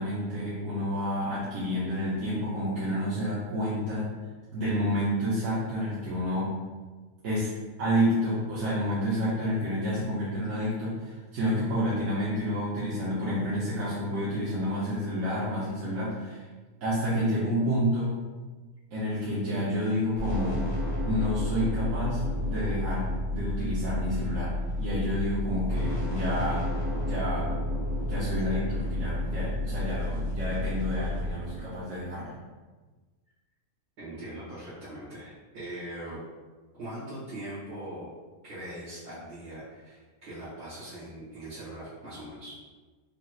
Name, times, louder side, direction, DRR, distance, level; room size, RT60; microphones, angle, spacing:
voice 1, 0.0-4.0 4.5-6.6 7.2-7.5 7.8-16.4 16.8-18.1 18.9-20.6 21.0-26.7 27.0-27.5 28.0-32.4, equal, 60° right, -9 dB, 1.2 m, -29 dB
sound 1, 20.1-31.3, left 1 dB, 40° right, 1.4 m, -30 dB
voice 2, 34.0-36.2 36.8-38.1 38.4-42.5, right 1 dB, 80° right, -14 dB, 2.2 m, -41 dB
5.0 x 2.9 x 2.4 m, 1.3 s
omnidirectional pair, 1.6 m